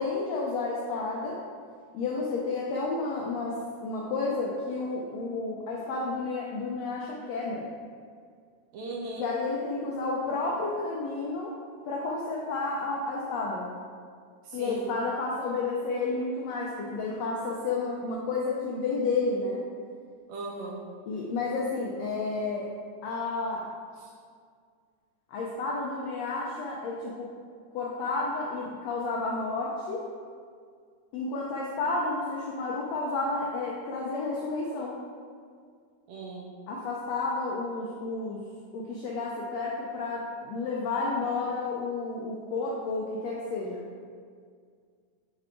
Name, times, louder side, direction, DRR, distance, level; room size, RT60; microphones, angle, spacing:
voice 1, 0.0-1.4 1.9-7.6 9.2-11.5 11.8-13.7 14.5-19.6 21.1-22.7 23.0-23.7 25.3-27.3 27.7-30.0 31.1-34.9 36.7-38.4 38.7-43.9, left 3 dB, 85° left, -3 dB, 1.5 m, -31 dB
voice 2, 8.7-9.3 14.5-14.9 20.3-20.8 24.0-24.1 36.1-36.5, right 2 dB, 75° right, -2 dB, 1.8 m, -38 dB
7.5 x 3.6 x 3.6 m, 2.1 s
omnidirectional pair, 3.6 m